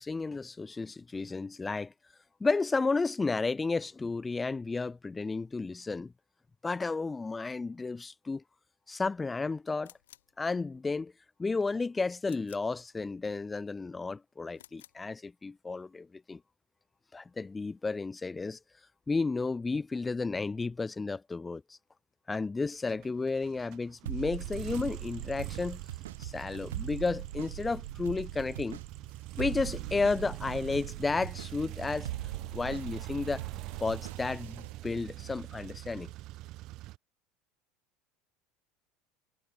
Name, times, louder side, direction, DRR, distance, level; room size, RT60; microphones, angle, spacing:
voice 1, 0.0-1.9 2.4-6.1 6.6-8.4 8.9-9.9 10.4-11.1 11.4-16.4 17.1-18.6 19.1-21.8 22.3-25.8 26.2-28.8 29.4-32.1 32.5-33.4 33.8-36.1, left 3 dB, 20° left, 0.4 m, -32 dB
sound 1, 9.8-10.4 12.2-12.8 14.5-15.1, left 13 dB, 80° left, 1.9 m, -56 dB
sound 2, 22.9-37.0, right 17 dB, 55° right, 1.3 m, -43 dB
sound 3, 24.1-34.7, right 13 dB, 80° right, 0.4 m, -42 dB
hypercardioid pair, 80°, 0 cm